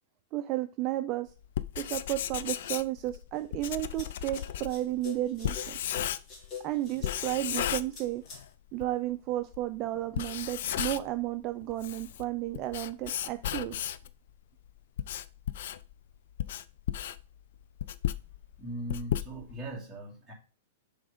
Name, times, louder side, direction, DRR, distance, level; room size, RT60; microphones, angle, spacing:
voice 1, 0.3-1.3 1.8-5.8 6.6-8.2 8.7-13.8, right 15 dB, 35° right, 8 dB, 0.4 m, -33 dB
Writing, 1.4-6.5 7.0-8.5 8.8-8.9 9.5-9.6 10.0-11.2 11.6-14.1 14.7-19.7, left 11 dB, 65° left, 0.4 m, -35 dB
sound 1, 3.3-8.4, left 6 dB, 25° left, 1.8 m, -44 dB
voice 2, 18.6-20.3, right 1 dB, ahead, -7 dB, 2.8 m, -39 dB
7.1 x 3.5 x 5.1 m, 0.35 s
hypercardioid pair, 145°, 0 cm